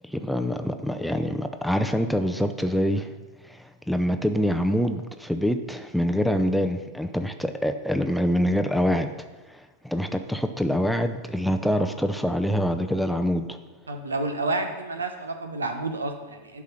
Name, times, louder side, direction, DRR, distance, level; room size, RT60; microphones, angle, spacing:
voice 1, 0.0-3.1 3.4-9.1 9.5-13.6, equal, ahead, 7 dB, 0.6 m, -25 dB
voice 2, 13.9-16.6, right 2 dB, 75° right, 6 dB, 1.0 m, -30 dB
12.0 x 4.8 x 5.8 m, 1.2 s
figure-of-eight pair, 90°, 0 cm